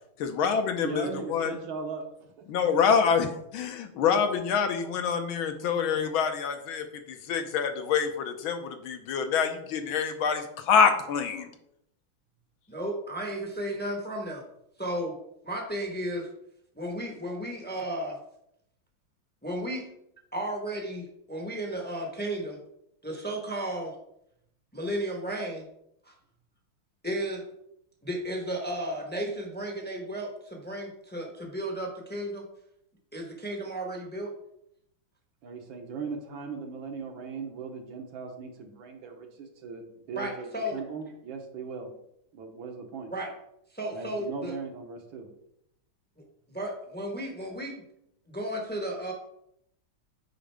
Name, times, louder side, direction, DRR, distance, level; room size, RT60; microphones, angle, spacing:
voice 1, 0.2-1.5 2.5-11.5, left 6 dB, 75° left, 6 dB, 1.6 m, -26 dB
voice 2, 0.8-2.5 35.4-41.9 42.3-43.1 43.9-45.3, right 5 dB, 70° right, 3 dB, 1.8 m, -38 dB
voice 3, 12.7-14.4 14.8-15.1 15.4-16.3 16.7-18.2 19.4-19.9 20.3-22.6 23.0-23.9 24.7-25.6 26.1-26.2 27.0-27.4 28.0-32.4 33.1-34.3 40.2-40.8 43.1-43.3 43.7-44.5 46.5-47.8 48.3-49.1, right 1 dB, 10° left, 1 dB, 0.7 m, -34 dB
8.8 x 5.2 x 3.4 m, 0.78 s
omnidirectional pair, 2.3 m